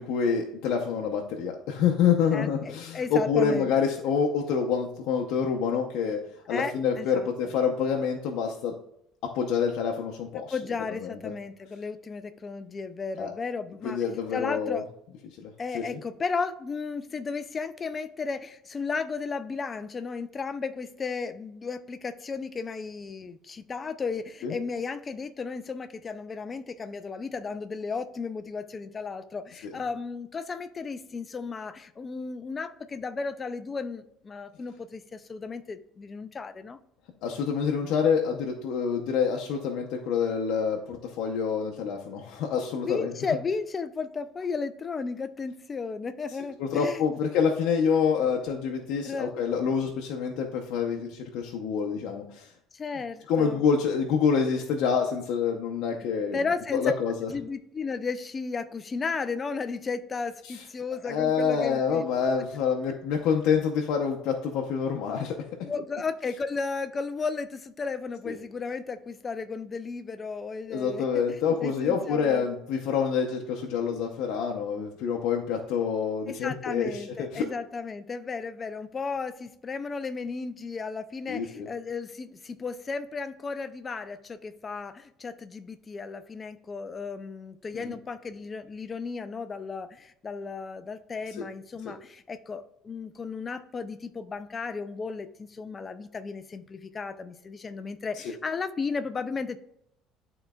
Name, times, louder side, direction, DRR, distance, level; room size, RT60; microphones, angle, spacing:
voice 1, 0.0-6.2 6.5-8.7 9.3-10.5 11.0-11.2 13.2-13.3 13.8-14.8 15.4-16.0 24.4-24.5 29.6-29.7 37.2-43.1 46.6-52.5 53.3-56.4 56.7-57.3 60.4-60.6 61.0-65.3 65.6-65.7 68.2-68.4 70.7-77.5 81.3-81.7 87.7-87.9 91.4-91.5 91.8-91.9 98.1-98.3, left 6 dB, 65° left, 1 dB, 0.7 m, -27 dB
voice 2, 2.3-3.7 6.5-7.3 10.5-14.0 14.3-14.9 15.6-36.8 42.8-47.2 49.0-49.3 52.7-53.6 56.3-56.9 57.3-62.0 65.6-72.4 76.3-99.6, left 4 dB, 20° left, 10 dB, 0.4 m, -34 dB
11.0 x 3.9 x 2.3 m, 0.76 s
cardioid pair, 165°, 0 cm